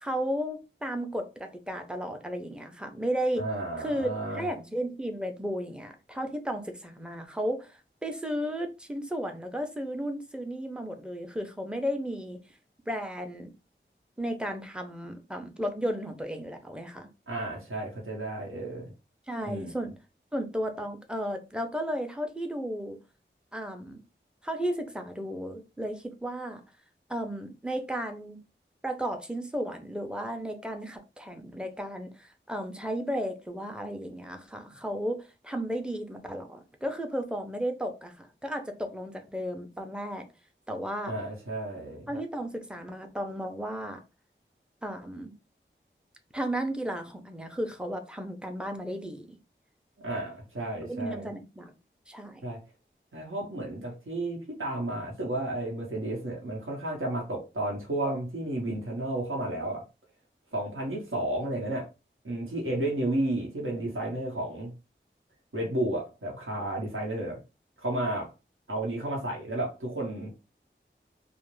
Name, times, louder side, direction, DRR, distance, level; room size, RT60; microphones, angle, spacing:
voice 1, 0.0-3.5 3.8-12.4 12.9-13.5 14.2-17.1 19.3-19.9 20.3-23.0 23.5-24.0 24.4-26.6 27.1-28.4 28.8-40.3 40.7-41.1 42.1-44.0 44.8-45.3 46.3-49.4 50.9-51.7 52.1-52.4, equal, 5° right, 0.5 m, -34 dB
voice 2, 3.4-4.4 17.3-18.9 19.5-19.7 41.1-42.1 50.0-51.3 52.4-52.6 53.1-59.8 60.5-61.9 62.2-64.7 65.5-67.4 67.8-68.3 68.7-70.3, right 1 dB, 85° right, 0.9 m, -32 dB
2.5 x 2.0 x 3.0 m
wide cardioid pair, 55°, 20 cm